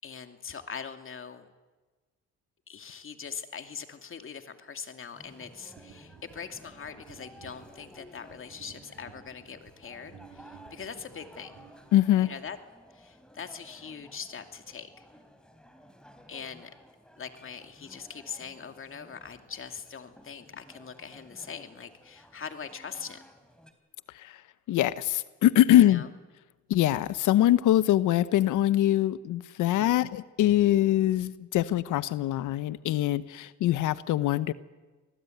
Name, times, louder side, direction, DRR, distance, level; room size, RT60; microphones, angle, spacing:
voice 1, 0.0-1.5 2.7-11.5 12.2-12.6 12.9-15.1 16.3-16.7 17.2-23.2 25.7-26.1 29.6-30.1, left 6 dB, 45° left, 7 dB, 2.6 m, -42 dB
sound 1, 5.1-23.7, equal, 5° left, 3.9 m, -55 dB
sound 2, 5.8-12.4, right 7 dB, 60° right, 3.1 m, -55 dB
voice 2, 11.9-12.3 24.1-24.4 24.7-26.0 26.7-34.5, left 13 dB, 80° left, 15 dB, 0.9 m, -23 dB
26.0 x 19.0 x 9.3 m, 1.2 s
cardioid pair, 90°, 30 cm